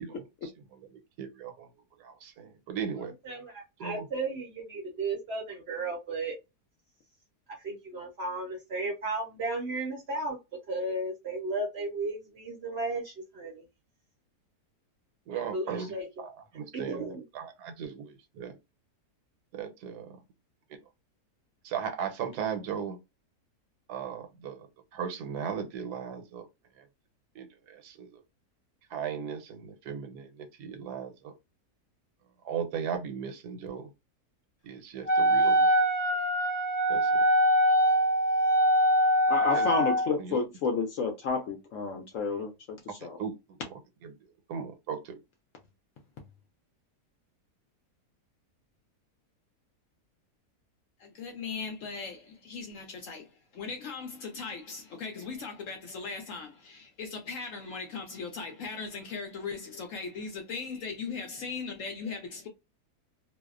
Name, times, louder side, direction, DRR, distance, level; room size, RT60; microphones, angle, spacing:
voice 1, 0.4-1.7 2.0-3.1 3.8-4.1 15.3-18.6 19.5-20.2 21.6-23.0 23.9-24.7 24.9-26.5 26.8-26.9 27.3-28.1 28.9-31.3 32.4-33.9 34.6-35.7 36.9-37.2 39.5-39.7 40.2-40.4 43.2-43.6 44.0-44.1 44.5-45.1, right 7 dB, 80° right, 1.1 m, -37 dB
voice 2, 3.0-6.3 7.6-10.4 10.7-13.6 15.3-16.1 16.7-17.2, right 2 dB, 60° right, 0.7 m, -34 dB
Wind instrument woodwind instrument, 35.1-40.1, equal, 90° left, 0.3 m, -23 dB
voice 3, 39.3-42.8 43.0-43.2 51.0-53.2 53.5-62.5, left 4 dB, 65° left, 0.8 m, -35 dB
2.6 x 2.0 x 2.3 m
omnidirectional pair, 1.7 m